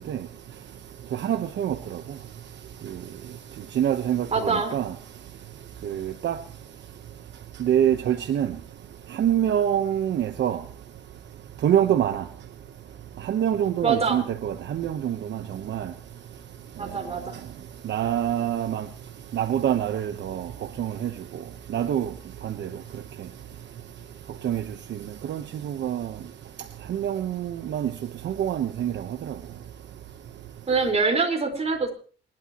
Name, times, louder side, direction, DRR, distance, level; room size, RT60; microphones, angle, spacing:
voice 1, 1.2-1.7 3.8-4.3 4.7-4.9 5.9-6.4 7.6-8.5 9.2-10.6 11.6-12.2 13.3-15.1 15.7-15.8 17.9-18.8 19.3-20.4 20.8-21.1 21.7-22.1 24.4-24.6 25.3-26.1 26.9-27.9 28.2-28.9, right 10 dB, 65° right, 1.0 m, -25 dB
voice 2, 4.3-4.8 13.8-14.2 16.8-17.3 30.7-31.9, right 4 dB, 30° right, 4.6 m, -24 dB
27.0 x 12.0 x 3.0 m
cardioid pair, 90°, 20 cm